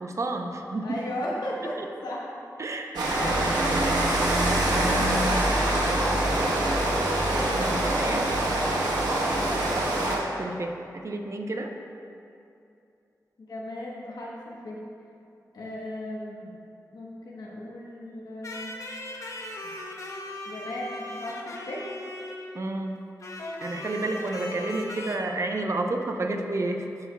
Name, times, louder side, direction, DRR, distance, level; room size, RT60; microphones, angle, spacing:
voice 1, 0.0-1.0 1.6-1.9 2.6-3.0 4.8-5.5 5.9-6.5 7.3-8.3 9.8-11.7 22.5-23.0 23.6-26.9, right 2 dB, 45° right, 4 dB, 0.6 m, -31 dB
voice 2, 0.8-2.3 3.0-3.9 4.9-5.5 9.3-9.6 13.4-14.8 15.5-16.6 16.9-18.7 19.6-19.7 20.5-21.9, left 1 dB, 85° left, -4 dB, 1.0 m, -37 dB
Rain, 2.9-10.2, right 1 dB, 90° right, 1.0 m, -24 dB
sound 1, 18.4-22.7 23.2-25.2, left 1 dB, 50° left, 0.8 m, -38 dB
13.0 x 4.6 x 2.2 m, 2.6 s
cardioid pair, 60°, 7 cm